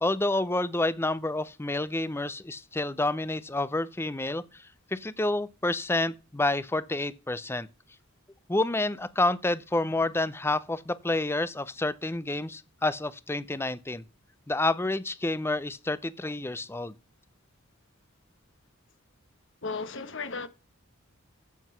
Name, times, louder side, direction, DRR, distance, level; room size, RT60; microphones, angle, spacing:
voice 1, 0.0-7.7 8.5-14.0 14.5-16.9, left 2 dB, 10° left, 0.5 m, -29 dB
voice 2, 19.6-20.5, left 4 dB, 60° left, 1.2 m, -34 dB
9.3 x 7.8 x 5.6 m
head